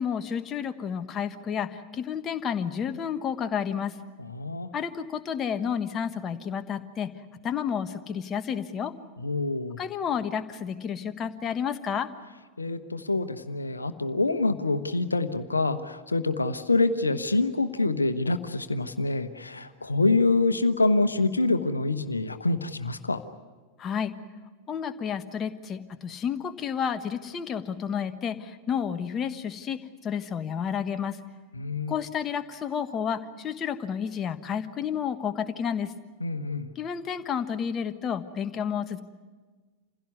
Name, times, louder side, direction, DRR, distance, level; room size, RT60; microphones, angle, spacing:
voice 1, 0.0-3.9 4.7-7.1 7.4-8.9 9.8-12.1 23.8-24.1 24.7-31.2 31.9-35.9 36.7-39.0, left 7 dB, 25° left, 9 dB, 1.3 m, -31 dB
voice 2, 4.2-4.7 9.2-9.8 12.6-23.2 31.5-31.9 36.2-36.7, left 3 dB, 80° left, 10 dB, 1.1 m, -26 dB
27.5 x 16.5 x 9.6 m, 1.4 s
figure-of-eight pair, 90°, 0 cm